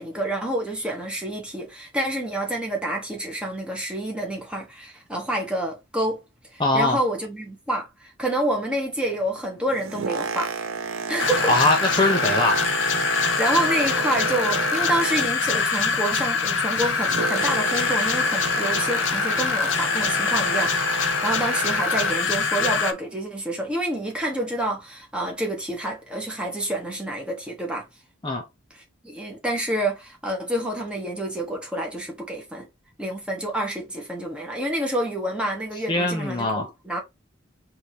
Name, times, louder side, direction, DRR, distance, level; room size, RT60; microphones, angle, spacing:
voice 1, 0.0-6.2 6.5-10.5 11.1-11.6 13.4-27.9 29.0-32.7 33.0-37.0, right 1 dB, 5° right, 1.3 m, -28 dB
voice 2, 6.6-7.0 11.5-12.6 28.2-28.4 35.9-36.7, left 2 dB, 25° left, 0.8 m, -21 dB
Boat Water vehicle, 9.5-15.6 15.9-22.4 23.0-23.1, right 5 dB, 80° right, 0.6 m, -32 dB
sound 1, 11.2-22.9, left 5 dB, 65° left, 0.7 m, -24 dB
5.2 x 2.8 x 3.0 m
head